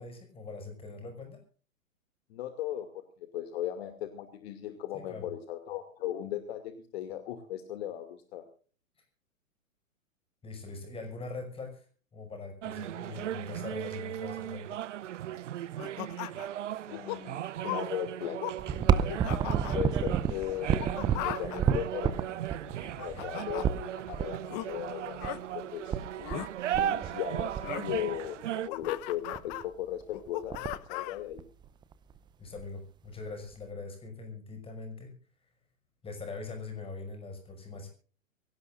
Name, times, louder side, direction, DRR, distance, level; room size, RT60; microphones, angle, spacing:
voice 1, 0.0-1.4 4.9-5.3 10.4-11.9 12.1-14.7 23.1-23.2 32.4-35.1 36.0-37.9, left 3 dB, 15° left, 6 dB, 6.1 m, -42 dB
voice 2, 2.3-2.9 3.2-8.4 16.9-18.4 19.7-20.9 21.2-22.1 23.0-26.0 26.8-28.4 28.6-31.4, left 11 dB, 50° left, 8 dB, 2.5 m, -37 dB
sound 1, 12.6-28.7, right 11 dB, 60° right, 0.8 m, -37 dB
sound 2, 15.8-16.6 16.9-17.2 17.6-17.9 18.2-18.6 18.9-19.8 20.6-21.6 22.7-23.7 24.5-24.7 25.2-25.4 26.2-26.5 27.6-27.9 28.4-29.6 30.1-31.2, left 17 dB, 30° left, 0.9 m, -38 dB
sound 3, 18.6-24.2 25.2-25.3 25.5-25.6 25.9-26.4 26.7-27.1 27.4-28.3 28.8-28.9 29.3-29.6 30.0-30.1 30.3-30.9 31.4-32.2 32.6-32.7 33.5-33.6, right 8 dB, 10° right, 0.6 m, -30 dB
23.5 x 17.5 x 2.5 m, 0.40 s
hypercardioid pair, 120°, 41 cm